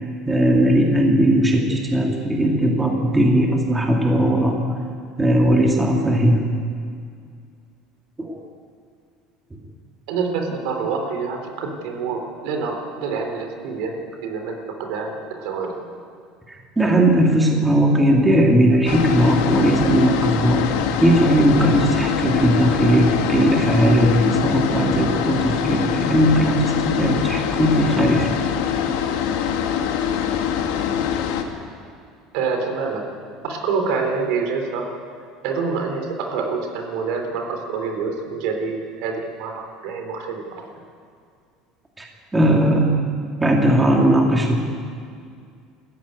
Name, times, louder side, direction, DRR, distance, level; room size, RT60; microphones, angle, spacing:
voice 1, 0.2-4.6 5.2-6.5 8.2-8.4 9.5-9.6 16.5-20.7 21.0-28.3 42.0-42.1 42.3-42.9 43.4-44.6, right 1 dB, 10° right, 0 dB, 2.1 m, -18 dB
voice 2, 10.1-15.8 32.3-33.1 33.4-34.9 35.4-40.7, right 5 dB, 70° right, 4 dB, 3.6 m, -26 dB
sound 1, 18.9-31.4, left 8 dB, 85° left, 2.0 m, -23 dB
20.5 x 14.5 x 9.5 m, 2.2 s
cardioid pair, 155°, 0 cm